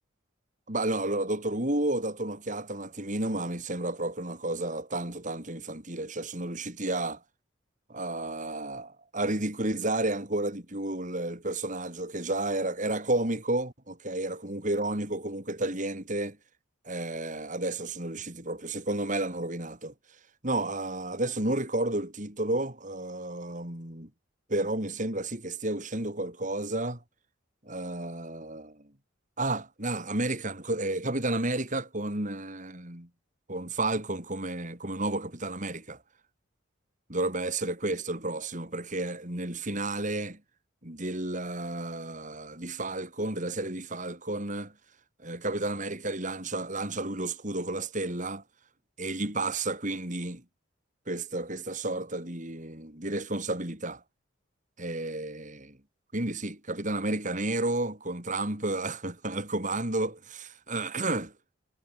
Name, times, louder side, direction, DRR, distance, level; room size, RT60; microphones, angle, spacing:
voice 1, 0.7-7.2 7.9-16.4 16.8-19.9 20.4-24.1 24.5-27.0 27.6-28.8 29.4-33.1 33.5-36.0 37.1-40.4 40.8-44.7 45.2-48.4 49.0-50.4 51.1-54.0 54.8-55.8 56.1-61.3, right 2 dB, 40° right, 4.4 m, -31 dB
head